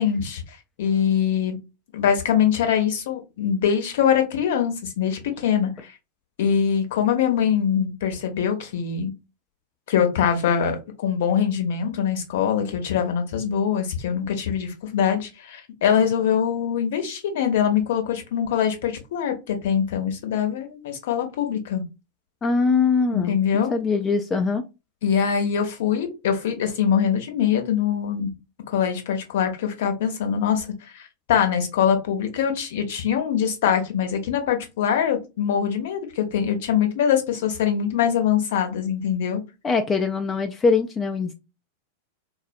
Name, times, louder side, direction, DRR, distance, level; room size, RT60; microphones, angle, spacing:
voice 1, 0.0-1.6 1.9-5.9 6.4-9.1 9.9-21.8 23.1-23.7 25.0-28.3 28.7-39.4, left 8 dB, 55° left, 0.7 m, -23 dB
voice 2, 22.4-24.6 39.6-41.3, left 4 dB, 20° left, 0.4 m, -22 dB
3.9 x 2.1 x 2.5 m
figure-of-eight pair, 90°, 0 cm